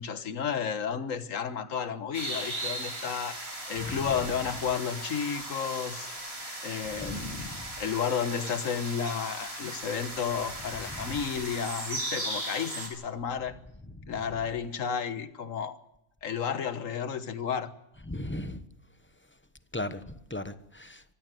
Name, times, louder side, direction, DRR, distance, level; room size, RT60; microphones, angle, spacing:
voice 1, 0.0-3.4 3.7-6.1 6.6-7.5 7.8-13.5 14.1-15.8 16.2-17.7, left 7 dB, 75° left, 1.7 m, -32 dB
sound 1, 2.1-12.9, right 1 dB, 50° right, 5.2 m, -37 dB
voice 2, 6.9-7.7 18.1-18.6 19.7-21.0, left 1 dB, 10° left, 0.9 m, -37 dB
23.5 x 14.5 x 7.7 m
omnidirectional pair, 1.4 m